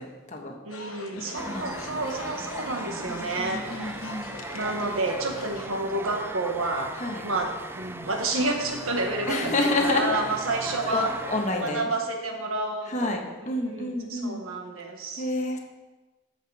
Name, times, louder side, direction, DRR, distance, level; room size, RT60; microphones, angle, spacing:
voice 1, 0.0-0.5 1.1-1.7 3.0-4.3 6.9-7.2 9.3-10.4 10.8-11.9 12.8-14.4 15.2-15.6, left 2 dB, 35° left, 1 dB, 1.4 m, -29 dB
voice 2, 0.6-4.0 4.5-6.9 7.2-11.1 11.6-13.2 13.6-15.3, right 2 dB, 80° right, 3 dB, 1.5 m, -30 dB
sound 1, 0.7-5.7, left 3 dB, 75° left, 1.0 m, -42 dB
sound 2, 1.3-11.9, right 2 dB, 10° right, 0.4 m, -38 dB
13.5 x 6.0 x 4.9 m, 1.2 s
head